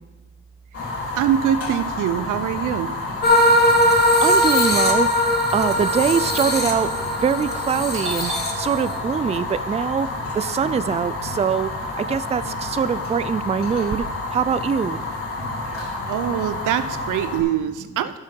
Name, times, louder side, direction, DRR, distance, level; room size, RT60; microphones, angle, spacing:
Fire, 0.7-17.4, left 2 dB, 50° left, 3.0 m, -29 dB
voice 1, 1.2-2.9 16.1-18.2, right 10 dB, 85° right, 11 dB, 0.7 m, -23 dB
sound 1, 3.2-9.0, left 1 dB, 35° left, 1.5 m, -20 dB
voice 2, 3.3-3.8 4.2-5.1 5.5-6.9 7.2-10.1 10.3-11.7 12.0-14.1 14.3-15.0, right 7 dB, 20° right, 15 dB, 0.4 m, -23 dB
Doorbell, 7.9-12.1 12.4-14.0, right 4 dB, 40° right, 1.3 m, -36 dB
11.5 x 8.4 x 4.6 m, 1.1 s
cardioid pair, 90°, 30 cm